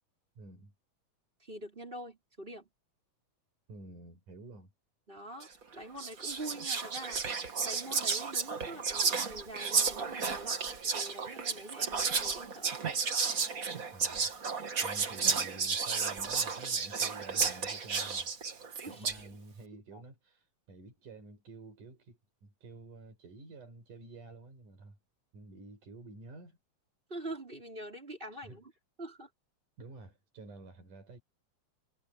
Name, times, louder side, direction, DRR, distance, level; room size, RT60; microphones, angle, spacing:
voice 1, 0.4-0.7 3.7-4.7 13.9-14.3 14.8-18.3 18.9-25.0 25.3-26.6 28.3-28.6 29.8-31.2, right 3 dB, 80° right, 7.0 m, -50 dB
voice 2, 1.4-2.7 5.1-10.6 10.9-12.8 18.8-19.1 19.9-20.0 27.1-28.7 29.0-29.3, right 1 dB, 15° right, 5.5 m, -45 dB
Whispering, 5.4-5.6 6.0-19.3, right 5 dB, 35° right, 1.6 m, -32 dB
omnidirectional pair, 3.6 m